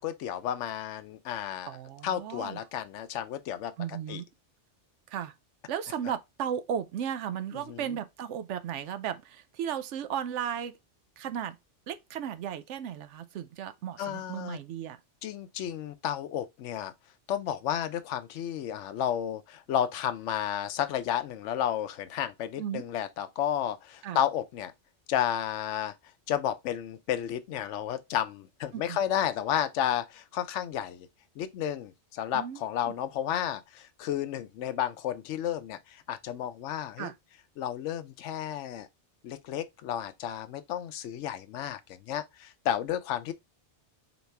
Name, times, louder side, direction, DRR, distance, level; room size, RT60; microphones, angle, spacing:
voice 1, 0.0-1.7 2.0-4.2 7.7-7.9 14.0-14.6 15.2-16.9 17.3-24.7 25.1-25.9 26.3-31.1 31.4-37.1 37.6-38.9 39.2-43.3, left 10 dB, 80° left, 0.9 m, -32 dB
voice 2, 1.7-2.6 3.8-4.2 5.1-5.3 5.7-10.8 11.2-11.6 11.9-15.0 22.6-22.8 24.0-24.2 28.7-29.0 32.3-32.6 37.0-37.1, right 9 dB, 80° right, 0.9 m, -35 dB
4.1 x 3.9 x 3.3 m
omnidirectional pair, 1.2 m